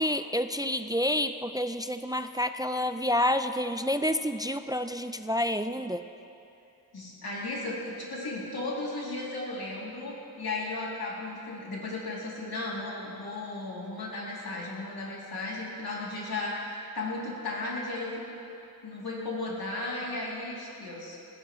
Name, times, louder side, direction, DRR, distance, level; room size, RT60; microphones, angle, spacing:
voice 1, 0.0-6.0, left 1 dB, 10° right, 9 dB, 0.4 m, -29 dB
voice 2, 6.9-18.4 18.8-21.2, left 2 dB, 90° left, -5 dB, 2.9 m, -35 dB
18.5 x 15.0 x 3.1 m, 2.7 s
wide cardioid pair, 70°, 36 cm